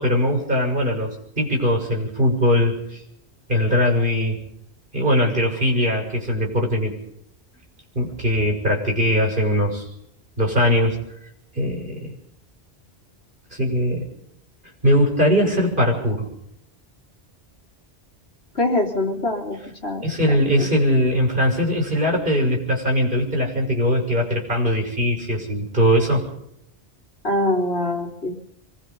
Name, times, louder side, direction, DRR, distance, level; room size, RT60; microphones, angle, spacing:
voice 1, 0.0-3.0 3.5-4.4 4.9-6.9 8.0-9.9 10.4-11.0 11.5-12.1 13.5-14.1 14.8-16.3 20.0-26.2, equal, 50° right, 1 dB, 7.0 m, -20 dB
voice 2, 18.5-20.0 20.6-20.7 27.2-28.4, left 1 dB, 75° left, 1 dB, 4.0 m, -23 dB
25.0 x 21.5 x 5.5 m, 0.73 s
omnidirectional pair, 1.1 m